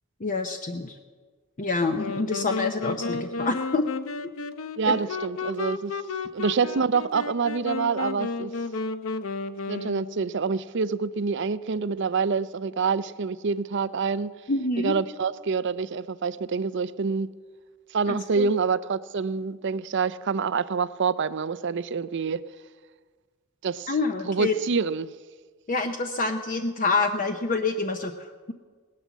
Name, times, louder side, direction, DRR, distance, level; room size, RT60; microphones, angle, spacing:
voice 1, 0.2-1.0 1.6-3.9 4.8-5.0 14.5-14.9 18.1-18.5 23.9-24.5 25.7-28.5, left 3 dB, 40° left, 5 dB, 0.7 m, -27 dB
sound 1, 1.9-10.4, left 4 dB, 70° left, 0.7 m, -33 dB
voice 2, 4.8-5.9 6.3-8.5 9.7-14.3 14.8-17.3 17.9-22.4 23.6-23.9 24.2-25.1, right 5 dB, 55° right, 15 dB, 0.5 m, -26 dB
18.0 x 11.0 x 7.2 m, 1.5 s
head